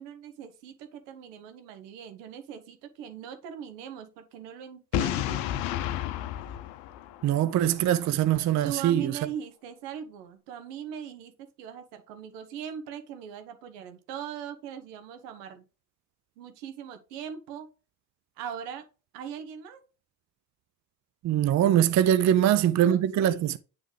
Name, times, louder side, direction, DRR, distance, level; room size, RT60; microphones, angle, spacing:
voice 1, 0.0-5.5 8.6-15.6 16.4-17.7 18.4-18.9 19.1-19.8 22.4-23.4, right 8 dB, 70° right, 1.0 m, -40 dB
Boom, 4.9-7.8, left 12 dB, 65° left, 0.6 m, -31 dB
voice 2, 7.2-9.1 21.2-23.6, right 11 dB, 35° right, 0.5 m, -23 dB
9.1 x 3.4 x 3.2 m
figure-of-eight pair, 45°, 49 cm